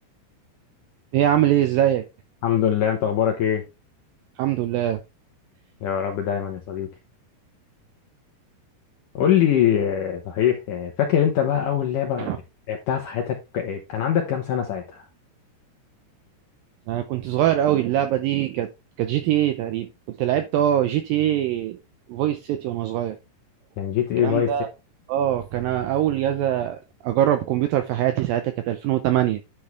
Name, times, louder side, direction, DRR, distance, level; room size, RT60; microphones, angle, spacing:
voice 1, 1.1-2.0 4.4-5.0 12.2-12.4 16.9-18.7 19.0-21.8 22.1-23.2 24.2-24.7 25.1-29.4, right 11 dB, 90° right, 2.0 m, -23 dB
voice 2, 2.4-3.6 5.8-6.9 9.1-12.4 12.7-15.0 23.8-24.5, left 9 dB, 70° left, 2.1 m, -23 dB
10.5 x 6.1 x 3.4 m
omnidirectional pair, 5.0 m